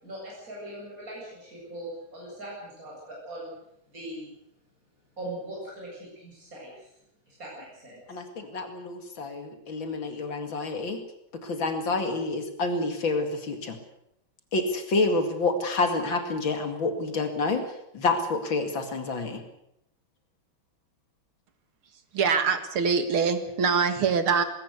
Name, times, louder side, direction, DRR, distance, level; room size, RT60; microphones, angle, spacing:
voice 1, 0.0-3.5 3.9-4.3 5.2-6.9 7.2-8.2, right 1 dB, 40° right, -4 dB, 8.5 m, -40 dB
voice 2, 8.1-11.0 11.4-13.8 14.5-17.6 17.9-19.4, left 3 dB, 65° left, 6 dB, 3.0 m, -28 dB
voice 3, 22.1-24.4, right 5 dB, 85° right, 9 dB, 2.7 m, -24 dB
20.5 x 18.0 x 8.2 m, 0.79 s
omnidirectional pair, 2.3 m